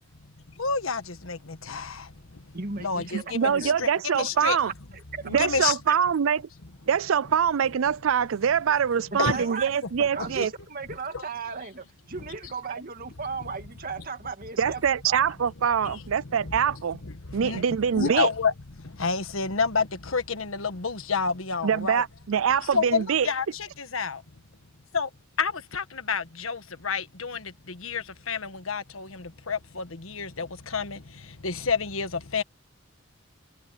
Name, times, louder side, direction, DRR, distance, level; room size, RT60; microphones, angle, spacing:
voice 1, 0.2-3.9 4.1-4.6 5.3-5.8 9.2-9.4 10.2-10.5 11.1-11.2 15.8-17.7 17.9-22.0 22.7-24.2 24.9-25.1 25.4-32.4, left 5 dB, 90° left, 1.5 m, -30 dB
voice 2, 2.5-3.8 5.1-6.0 9.1-15.3 18.0-18.2, right 4 dB, 45° right, 2.1 m, -36 dB
voice 3, 3.1-4.7 5.3-6.4 6.9-10.5 14.6-17.0 17.3-18.3 21.6-23.3, right 7 dB, 75° right, 0.4 m, -24 dB
head